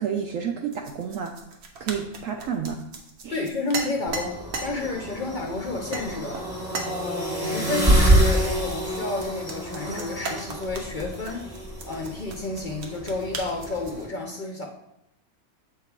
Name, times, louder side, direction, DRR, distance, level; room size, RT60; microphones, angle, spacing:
voice 1, 0.0-1.3 1.8-2.8 3.2-3.4, right 7 dB, 70° right, 3 dB, 0.9 m, -30 dB
sound 1, 0.7-4.7 5.3-5.5 5.9-6.1 6.3-6.9 8.1-14.0, right 3 dB, 90° right, 1.5 m, -37 dB
voice 2, 3.3-6.4 6.8-11.5 11.8-14.7, left 2 dB, 50° left, 2 dB, 0.6 m, -31 dB
sound 2, 4.1-14.1, right 1 dB, 15° right, 1.3 m, -27 dB
7.5 x 3.7 x 4.6 m, 0.86 s
omnidirectional pair, 1.5 m